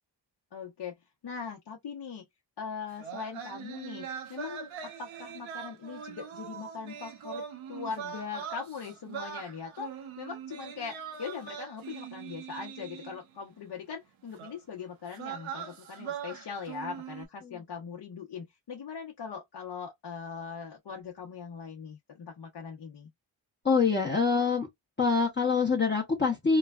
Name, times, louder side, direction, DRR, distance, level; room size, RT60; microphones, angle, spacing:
voice 1, 0.5-1.0 1.2-2.2 2.6-4.7 5.0-9.9 10.2-23.1, left 6 dB, 55° left, 0.8 m, -40 dB
sound 1, 2.9-13.4 14.4-14.6 15.1-17.3, right 7 dB, 80° right, 0.9 m, -41 dB
voice 2, 23.6-24.7 25.0-26.6, left 4 dB, 25° left, 0.8 m, -25 dB
3.1 x 2.2 x 2.2 m
cardioid pair, 70°, 46 cm